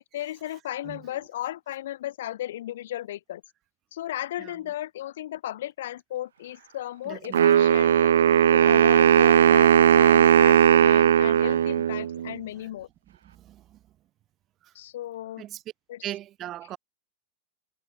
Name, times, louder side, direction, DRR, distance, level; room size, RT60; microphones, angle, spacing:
voice 1, 0.1-3.4 3.9-8.1 8.5-12.9 14.7-15.4 15.9-16.0, left 13 dB, 60° left, 0.6 m, -35 dB
voice 2, 7.1-7.6 12.4-12.7 13.2-13.8 14.6-14.7 15.4-15.6 16.0-16.8, right 13 dB, 30° right, 2.1 m, -40 dB
Wind instrument woodwind instrument, 7.3-12.3, right 9 dB, 65° right, 0.3 m, -18 dB
figure-of-eight pair, 90°, 0 cm